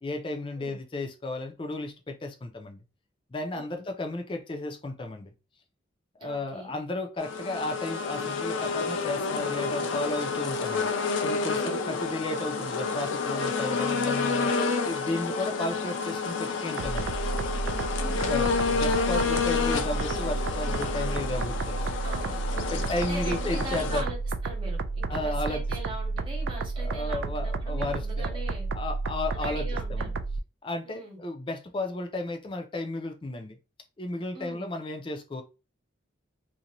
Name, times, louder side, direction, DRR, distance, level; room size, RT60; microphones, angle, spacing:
voice 1, 0.0-2.8 3.3-5.3 6.2-10.9 11.2-14.5 14.8-17.2 18.2-21.8 22.7-24.1 25.1-25.6 26.8-28.4 28.7-30.1 30.6-33.6 34.0-35.4, left 2 dB, 25° left, 0.3 m, -34 dB
voice 2, 6.2-6.7 11.6-11.9 18.0-18.3 22.0-24.2 24.4-28.7 29.3-30.1 30.8-31.2 34.3-34.6, right 2 dB, 25° right, 0.9 m, -41 dB
sound 1, 7.2-24.0, left 4 dB, 85° left, 0.5 m, -29 dB
sound 2, 16.8-30.4, right 3 dB, 80° right, 0.3 m, -31 dB
2.6 x 2.1 x 2.9 m
head